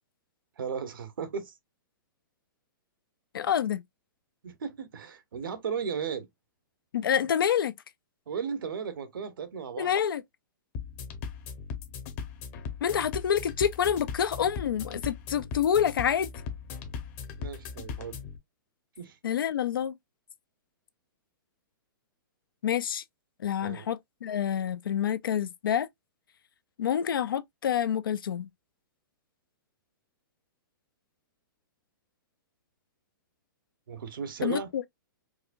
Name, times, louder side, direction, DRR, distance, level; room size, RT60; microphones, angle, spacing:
voice 1, 0.6-1.6 4.4-6.3 8.3-10.0 17.4-18.2 19.0-19.2 23.6-23.9 33.9-34.7, right 6 dB, 80° right, 1.0 m, -35 dB
voice 2, 3.3-3.8 6.9-7.7 9.8-10.2 12.8-16.3 19.2-19.9 22.6-23.0 23.4-25.9 26.8-28.5 34.4-34.8, left 9 dB, 80° left, 0.5 m, -27 dB
sound 1, 10.7-18.4, left 6 dB, 40° left, 0.9 m, -39 dB
4.8 x 2.2 x 2.5 m
hypercardioid pair, 135°, 11 cm